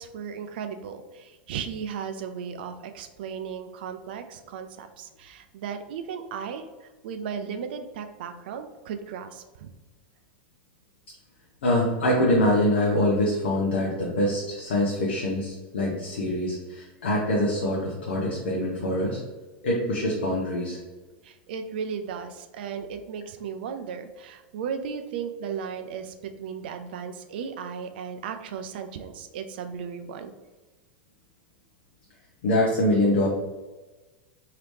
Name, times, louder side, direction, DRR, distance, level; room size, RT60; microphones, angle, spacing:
voice 1, 0.0-9.7 21.2-30.3, right 7 dB, 65° right, 7 dB, 0.3 m, -36 dB
voice 2, 11.6-19.2 19.6-20.8 32.4-33.3, left 1 dB, 70° left, -3 dB, 0.7 m, -24 dB
3.0 x 2.8 x 3.2 m, 1.2 s
hypercardioid pair, 90°, 6 cm